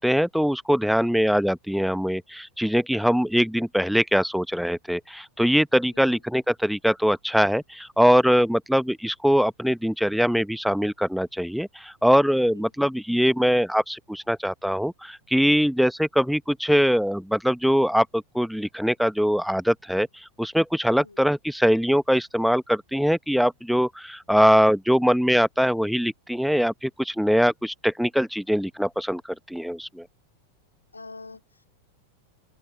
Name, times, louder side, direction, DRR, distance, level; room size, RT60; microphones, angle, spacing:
voice 1, 0.0-30.1, equal, ahead, 1.1 m, -22 dB
voice 2, 30.9-31.7, left 3 dB, 80° left, 2.8 m, -45 dB
open air
figure-of-eight pair, 90°, 0 cm